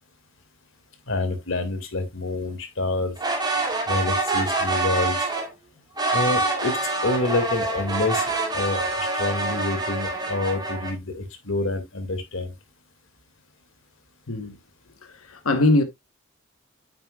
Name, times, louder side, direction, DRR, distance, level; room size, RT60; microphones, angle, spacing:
voice 1, 1.1-3.1 3.9-5.2 6.1-6.8 7.0-8.2 8.5-12.5, left 2 dB, 65° left, 2.1 m, -27 dB
sound 1, 3.2-5.5 6.0-10.9, right 2 dB, 20° right, 2.4 m, -26 dB
voice 2, 15.3-15.8, left 2 dB, 85° left, 1.1 m, -20 dB
9.5 x 7.6 x 2.3 m
head